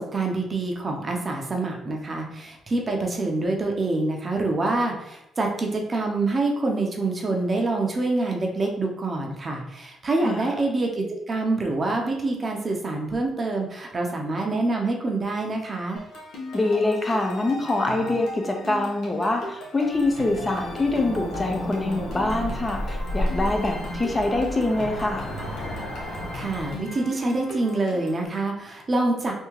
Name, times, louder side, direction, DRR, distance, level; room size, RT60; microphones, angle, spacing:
voice 1, 0.0-16.0 26.1-29.3, right 2 dB, 35° right, 1 dB, 0.6 m, -26 dB
sound 1, 16.0-28.3, left 2 dB, 75° left, 0.9 m, -39 dB
voice 2, 16.5-25.2, left 2 dB, 25° left, 3 dB, 0.6 m, -25 dB
Cricket / Motor vehicle (road), 19.9-26.8, equal, 55° left, 1.2 m, -32 dB
3.5 x 2.7 x 3.0 m, 0.87 s
cardioid pair, 90°, 0 cm